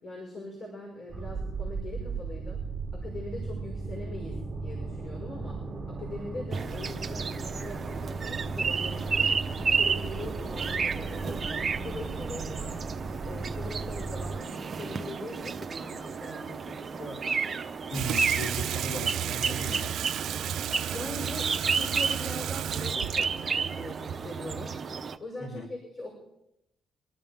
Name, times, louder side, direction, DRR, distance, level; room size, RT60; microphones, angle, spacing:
voice 1, 0.0-2.6 2.9-5.6 5.9-9.3 9.6-12.7 13.3-17.3 20.9-24.7 25.2-26.1, left 2 dB, 45° left, -2 dB, 5.9 m, -41 dB
sound 1, 1.1-14.4, right 3 dB, 25° right, 2.0 m, -36 dB
sound 2, 6.5-25.2, right 5 dB, 40° right, 0.9 m, -32 dB
voice 2, 17.9-19.9 25.4-25.7, equal, 70° left, -1 dB, 4.1 m, -36 dB
Water tap faucet / Sink (filling or washing), 17.9-24.9, right 10 dB, 75° right, 0.5 m, -34 dB
25.0 x 13.5 x 3.8 m, 0.84 s
cardioid pair, 90°, 0 cm